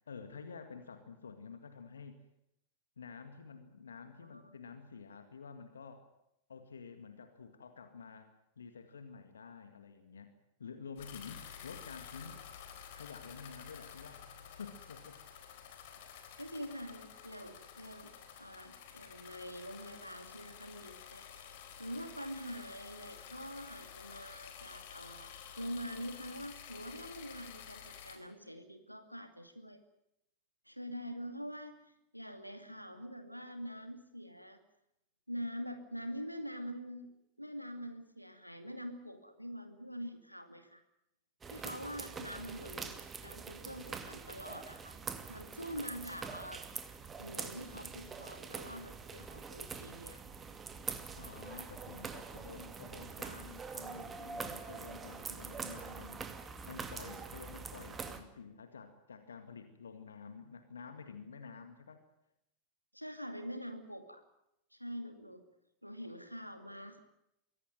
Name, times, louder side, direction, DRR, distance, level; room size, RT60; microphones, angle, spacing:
voice 1, 0.1-2.2 3.0-6.1 6.5-10.3 10.6-12.4 12.9-15.2 51.2-56.2 56.6-62.0, left 5 dB, 70° left, 8 dB, 2.0 m, -50 dB
sound 1, 11.0-28.2, left 8 dB, 55° left, 4.2 m, -51 dB
voice 2, 16.4-18.1 18.4-29.8 30.7-34.6 35.3-37.1 37.4-40.8 41.5-45.0 45.3-46.6 47.2-50.2 62.9-64.2 64.7-65.4 65.8-67.0, equal, 90° left, 8 dB, 2.4 m, -45 dB
sound 2, 41.4-58.2, right 5 dB, 20° right, 2.4 m, -44 dB
23.5 x 17.5 x 9.2 m, 0.82 s
figure-of-eight pair, 90°, 0 cm